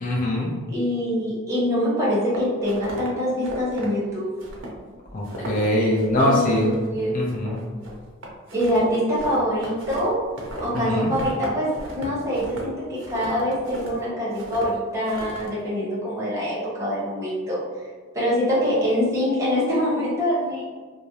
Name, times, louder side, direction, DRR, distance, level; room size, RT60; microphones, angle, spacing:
voice 1, 0.0-0.5 5.1-6.7 7.1-7.6 10.7-11.1, left 1 dB, 40° left, -4 dB, 0.6 m, -22 dB
voice 2, 0.7-4.3 6.2-7.2 8.5-10.2 10.6-17.6 18.1-20.6, equal, 15° right, -8 dB, 0.8 m, -24 dB
sound 1, 2.1-3.1 3.4-3.9 4.4-4.8 5.0-5.7 6.0-6.3 6.5-7.0 7.3-10.8 11.1-14.0 14.3-14.7 15.0-15.5, right 1 dB, 60° right, 0.6 m, -37 dB
2.5 x 2.0 x 2.8 m, 1.4 s
head